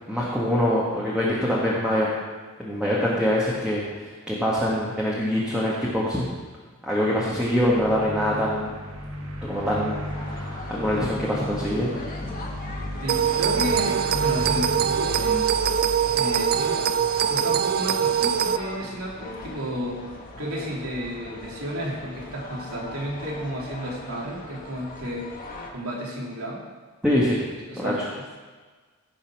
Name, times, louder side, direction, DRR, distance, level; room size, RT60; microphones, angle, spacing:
voice 1, 0.1-2.2 2.6-6.3 6.9-8.7 9.4-10.0 10.4-11.9 27.0-27.4 27.8-27.9, equal, 5° right, -7 dB, 1.7 m, -24 dB
sound 1, 7.2-17.4, equal, 75° right, 1.5 m, -35 dB
sound 2, 10.0-25.7, left 2 dB, 40° left, 1.5 m, -41 dB
voice 2, 13.0-15.6 16.1-16.8 17.3-20.0 20.4-25.3 25.7-26.6 27.6-28.0, equal, 90° right, -3 dB, 3.0 m, -32 dB
sound 3, 13.1-18.6, right 8 dB, 45° right, 0.4 m, -23 dB
16.0 x 5.5 x 6.1 m, 1.4 s
head